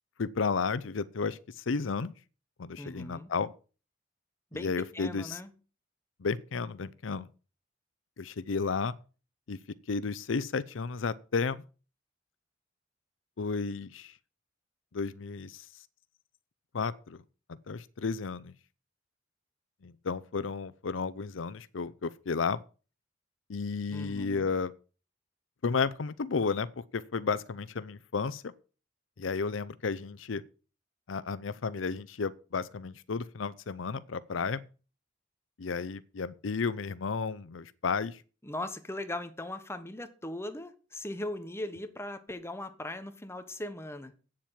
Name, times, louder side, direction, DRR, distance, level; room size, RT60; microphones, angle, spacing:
voice 1, 0.2-2.1 2.6-3.5 4.5-5.4 6.2-7.3 8.2-8.9 9.5-9.6 9.9-11.6 13.4-14.1 14.9-15.6 16.7-17.2 17.7-18.5 19.8-22.6 23.5-24.7 25.6-28.5 29.2-30.4 31.1-34.6 35.6-38.2, left 5 dB, 90° left, 0.6 m, -32 dB
voice 2, 2.8-3.3 4.5-5.5 23.9-24.5 38.4-44.1, left 1 dB, 15° left, 1.2 m, -39 dB
8.7 x 7.5 x 7.4 m
head